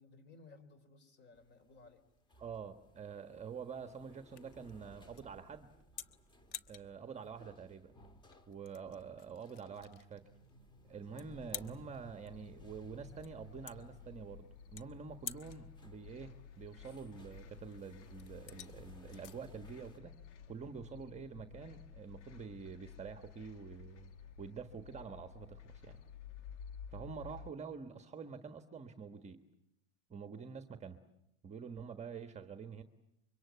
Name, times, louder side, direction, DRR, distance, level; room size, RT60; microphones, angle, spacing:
voice 1, 0.0-2.0, left 3 dB, 30° left, 13 dB, 3.6 m, -59 dB
sound 1, 1.3-20.0, equal, 15° left, 1.9 m, -61 dB
sound 2, 2.1-20.9, left 10 dB, 55° left, 1.3 m, -53 dB
voice 2, 2.4-5.7 6.7-7.9 8.5-10.2 10.8-20.1 20.5-24.1 24.4-26.0 26.9-29.4 30.1-31.0 31.4-32.8, right 6 dB, 20° right, 8 dB, 1.3 m, -47 dB
sound 3, 12.3-27.5, left 6 dB, 90° left, 1.9 m, -53 dB
26.0 x 24.0 x 8.4 m, 0.81 s
supercardioid pair, 145°, 35 cm